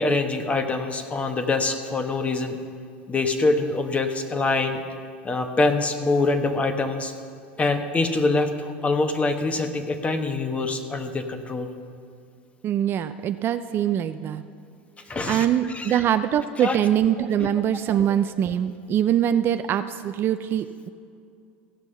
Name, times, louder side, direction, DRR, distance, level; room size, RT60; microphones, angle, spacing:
voice 1, 0.0-2.6 3.1-4.8 5.2-7.1 7.6-11.7 15.1-16.0 16.6-16.8 17.9-18.0, left 3 dB, 20° left, 7 dB, 1.1 m, -24 dB
voice 2, 12.6-14.4 15.3-20.9, right 10 dB, 40° right, 10 dB, 0.4 m, -23 dB
16.0 x 6.1 x 5.6 m, 2.3 s
hypercardioid pair, 90°, 6 cm